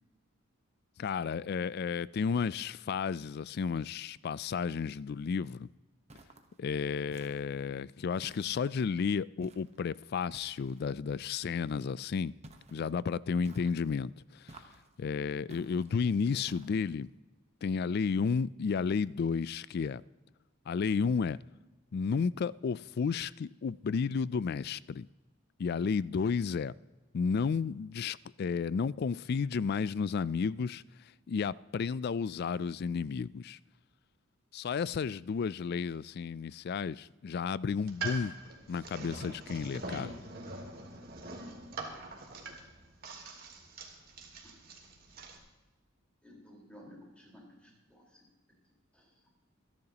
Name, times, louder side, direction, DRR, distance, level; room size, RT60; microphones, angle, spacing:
voice 1, 1.0-5.7 6.6-12.3 12.7-14.1 15.0-17.1 17.6-20.0 20.7-21.4 21.9-25.1 25.6-26.7 27.1-30.8 31.3-33.6 34.5-38.3 38.7-40.2, left 5 dB, 50° left, 0.3 m, -32 dB
sound 1, 6.1-6.6 7.1-7.7 8.2-8.9 9.4-9.8 10.3-10.9 12.4-12.9 13.4-14.0 14.5-15.0 15.5-16.0 16.5-17.0, right 2 dB, 35° right, 1.0 m, -54 dB
sound 2, 37.7-45.4, right 3 dB, 50° right, 2.2 m, -43 dB
voice 2, 46.2-48.2 48.9-49.1, equal, 5° left, 4.3 m, -54 dB
26.5 x 10.5 x 2.9 m
head